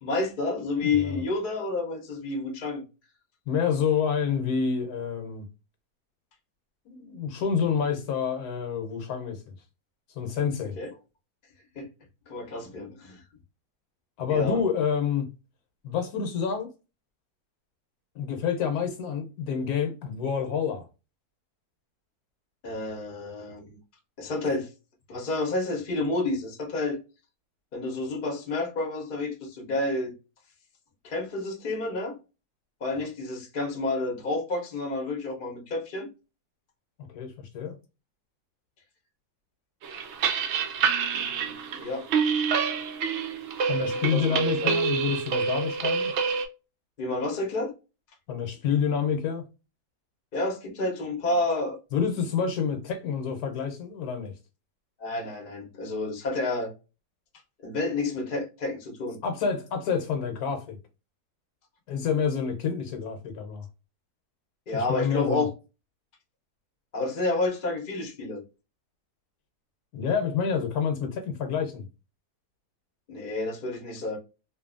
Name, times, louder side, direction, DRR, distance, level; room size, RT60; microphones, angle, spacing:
voice 1, 0.0-2.8 10.7-10.9 11.7-11.9 12.3-13.2 14.3-14.6 22.6-23.8 24.2-24.7 25.1-27.0 27.7-30.1 31.0-32.2 32.8-36.1 41.1-42.1 43.9-44.7 47.0-47.7 50.3-51.8 55.0-56.7 57.6-59.2 64.7-65.5 66.9-68.4 73.1-74.2, left 2 dB, 45° left, 0.7 m, -30 dB
voice 2, 0.8-1.2 3.5-5.5 6.9-9.5 10.1-10.8 14.2-15.3 15.8-16.7 18.1-20.9 32.9-33.1 37.1-37.7 43.7-46.1 48.3-49.4 51.9-54.3 59.2-60.8 61.9-63.7 64.7-65.5 69.9-71.9, left 6 dB, 75° left, 1.1 m, -28 dB
sound 1, 39.8-46.5, right 6 dB, 75° right, 0.6 m, -27 dB
2.6 x 2.5 x 2.4 m
omnidirectional pair, 1.7 m